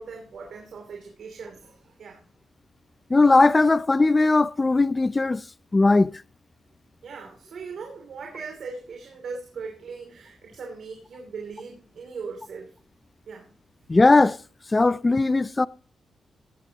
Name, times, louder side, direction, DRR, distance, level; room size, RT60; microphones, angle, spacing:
voice 1, 0.0-2.2 7.0-12.7 13.3-13.5, right 5 dB, 65° right, 2.9 m, -39 dB
voice 2, 3.1-5.4 5.7-6.1 13.9-14.4 14.7-15.7, left 3 dB, 20° left, 0.5 m, -18 dB
16.5 x 12.0 x 2.9 m
cardioid pair, 120°, 0 cm